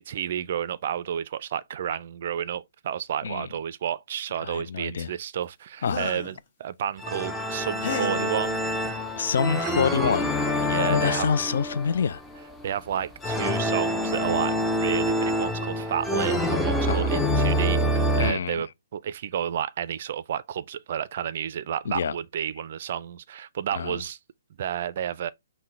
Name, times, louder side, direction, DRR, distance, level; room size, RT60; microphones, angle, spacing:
voice 1, 0.0-8.7 9.4-9.7 10.6-11.3 12.6-24.2 24.6-25.3, right 9 dB, 45° right, 0.4 m, -31 dB
voice 2, 4.4-5.1 5.8-6.1 9.2-10.3 10.8-12.2 16.9-17.1 18.2-18.6 21.9-22.1 23.7-24.0, left 6 dB, 55° left, 0.3 m, -26 dB
sound 1, 5.8-6.4 7.8-8.3 9.7-9.8 10.2-10.5, left 5 dB, 40° left, 1.2 m, -33 dB
sound 2, 7.0-18.3, equal, 5° left, 0.5 m, -26 dB
5.6 x 2.1 x 4.5 m
figure-of-eight pair, 130°, 0 cm